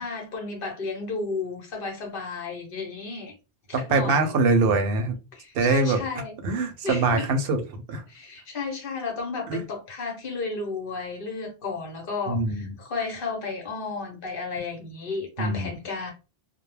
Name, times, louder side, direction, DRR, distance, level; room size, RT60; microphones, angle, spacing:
voice 1, 0.0-3.3 3.7-4.3 5.3-6.4 6.8-7.3 8.1-16.1, left 4 dB, 60° left, 0.9 m, -33 dB
voice 2, 3.7-5.1 5.5-6.0 6.4-8.0 9.5-9.6 12.3-12.7 15.4-15.7, right 3 dB, 70° right, 0.7 m, -23 dB
2.2 x 2.0 x 3.1 m
omnidirectional pair, 1.0 m